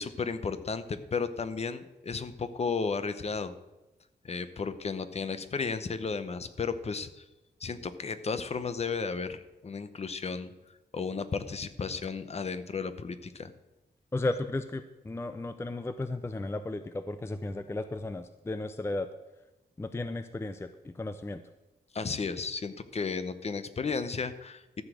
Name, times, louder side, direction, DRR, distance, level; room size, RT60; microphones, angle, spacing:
voice 1, 0.0-3.5 4.2-7.2 7.6-10.5 10.9-13.5 21.9-24.8, left 5 dB, 40° left, 11 dB, 0.8 m, -34 dB
voice 2, 14.1-19.1 19.8-21.4, left 2 dB, 15° left, 10 dB, 0.5 m, -34 dB
13.5 x 5.0 x 7.8 m, 1.0 s
wide cardioid pair, 120°, 17 cm